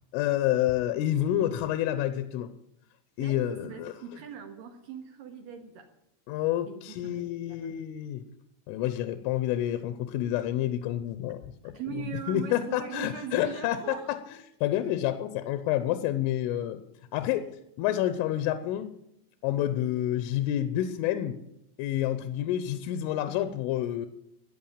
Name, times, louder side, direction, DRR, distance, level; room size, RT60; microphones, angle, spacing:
voice 1, 0.1-2.5 3.2-3.9 6.3-8.2 8.7-12.0 12.3-14.2 14.6-16.8 17.1-17.5 17.8-18.9 19.4-21.4 21.8-24.1, left 12 dB, 80° left, 11 dB, 3.2 m, -29 dB
voice 2, 3.2-5.9 6.7-7.8 11.7-14.2, right 7 dB, 65° right, 5 dB, 2.3 m, -40 dB
14.5 x 10.0 x 8.8 m, 0.83 s
omnidirectional pair, 6.0 m